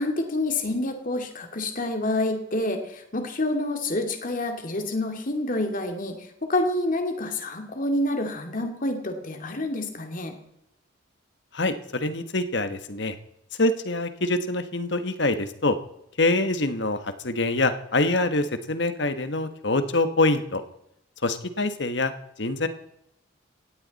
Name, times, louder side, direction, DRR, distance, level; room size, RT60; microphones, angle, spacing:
voice 1, 0.0-10.3, left 1 dB, 45° left, 4 dB, 2.4 m, -28 dB
voice 2, 11.5-13.2 13.6-15.8 16.2-20.6 21.2-22.1 22.4-22.7, left 2 dB, 60° left, 9 dB, 1.4 m, -25 dB
18.0 x 15.5 x 4.2 m, 0.81 s
head